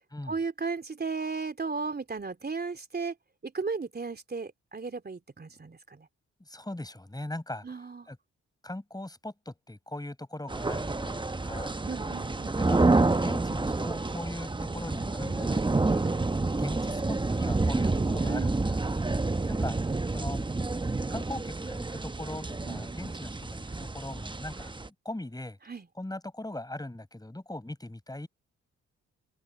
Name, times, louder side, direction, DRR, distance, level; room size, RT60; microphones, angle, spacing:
voice 1, 0.2-3.1 3.4-6.1 7.6-8.1 11.9-12.6 18.3-18.5 22.6-22.9 25.7-25.9, right 4 dB, 35° right, 3.3 m, -35 dB
voice 2, 6.4-7.8 8.1-8.2 8.6-11.8 12.6-12.8 13.1-16.2 16.5-19.1 19.5-19.8 20.1-20.4 21.1-24.7 25.0-25.6 26.0-28.3, left 1 dB, 15° left, 7.8 m, -40 dB
sound 1, 10.5-24.9, right 3 dB, 15° right, 1.0 m, -29 dB
supercardioid pair, 55°, 29 cm